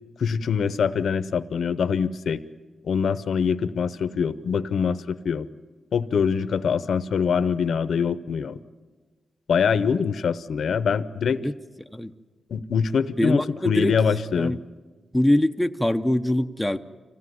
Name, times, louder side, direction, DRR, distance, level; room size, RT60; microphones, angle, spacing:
voice 1, 0.2-2.4 2.8-5.5 5.9-8.6 9.5-11.4 12.5-14.6, left 6 dB, 70° left, 14 dB, 0.7 m, -24 dB
voice 2, 13.2-13.9 14.4-14.6 15.1-16.8, left 1 dB, ahead, 6 dB, 0.6 m, -23 dB
25.5 x 16.0 x 9.5 m, 1.3 s
wide cardioid pair, 140°, 0 cm